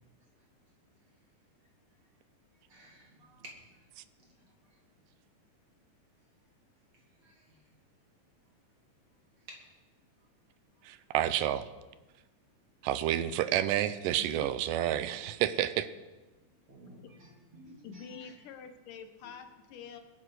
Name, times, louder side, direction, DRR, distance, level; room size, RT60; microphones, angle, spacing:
voice 1, 2.7-3.9 4.2-4.8 6.9-7.6 9.4-9.7 13.6-13.9 15.2-15.3 16.7-18.3 19.2-19.3, right 1 dB, 40° right, -2 dB, 3.8 m, -54 dB
voice 2, 10.8-11.7 12.8-15.9, right 12 dB, 85° right, 13 dB, 2.3 m, -29 dB
voice 3, 17.8-20.0, left 6 dB, 80° left, 7 dB, 2.6 m, -46 dB
21.0 x 11.0 x 4.8 m, 1.2 s
omnidirectional pair, 3.7 m